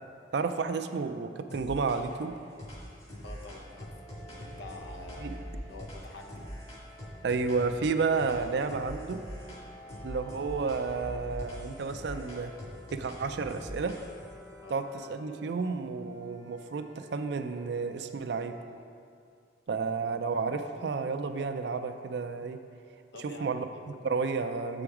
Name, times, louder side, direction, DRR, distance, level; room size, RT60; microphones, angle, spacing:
voice 1, 0.3-2.4 5.2-5.4 7.2-9.2 10.0-12.5 12.9-14.0 14.7-18.6 19.7-22.6 23.2-24.8, right 4 dB, 65° right, 8 dB, 0.4 m, -31 dB
sound 1, 1.5-2.2 2.6-7.9 8.2-9.6 9.9-14.3, equal, 35° left, 2.0 m, -43 dB
voice 2, 3.2-3.9 4.3-6.6 14.6-14.8 20.5-20.6 23.1-23.9, left 2 dB, 75° left, 2 dB, 0.8 m, -47 dB
sound 2, 3.3-18.8, left 1 dB, 10° left, 1.0 m, -53 dB
7.0 x 4.9 x 5.8 m, 2.3 s
head